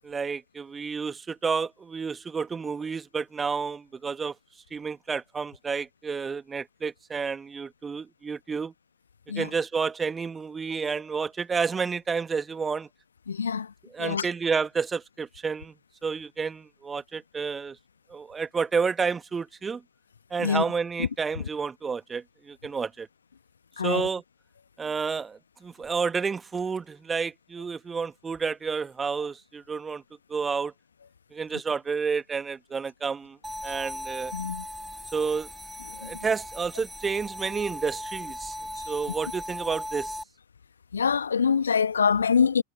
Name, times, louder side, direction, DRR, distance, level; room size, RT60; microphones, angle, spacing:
voice 1, 0.0-4.3 4.7-8.7 9.4-12.9 13.9-15.7 16.0-17.8 18.1-19.8 20.3-23.1 23.8-24.2 24.8-30.0 30.3-30.7 31.3-33.4 33.6-34.3 35.1-35.5 36.0-40.2, right 5 dB, 15° right, 1.6 m, -30 dB
voice 2, 13.3-13.7 14.0-14.3 20.4-20.6 21.0-21.1 23.8-24.1 34.3-34.6 36.0-36.1 40.9-42.6, left 6 dB, 70° left, 1.3 m, -24 dB
sound 1, 33.4-40.2, equal, ahead, 5.1 m, -38 dB
figure-of-eight pair, 90°, 0 cm